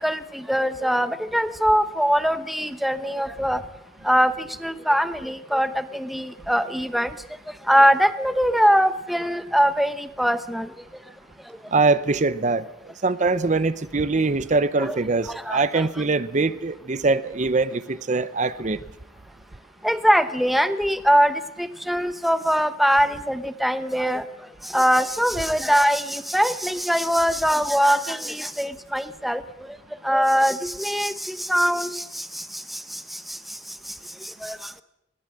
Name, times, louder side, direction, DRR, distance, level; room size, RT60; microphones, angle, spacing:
voice 1, 0.0-3.6 4.0-7.2 7.7-10.7 14.8-15.0 15.3-16.0 19.8-24.2 24.6-29.8 30.0-33.6 33.9-34.0 34.2-34.8, equal, ahead, 11 dB, 0.9 m, -22 dB
voice 2, 11.7-12.7 13.0-18.8, right 3 dB, 40° right, 14 dB, 0.7 m, -22 dB
21.0 x 18.0 x 7.6 m, 0.85 s
head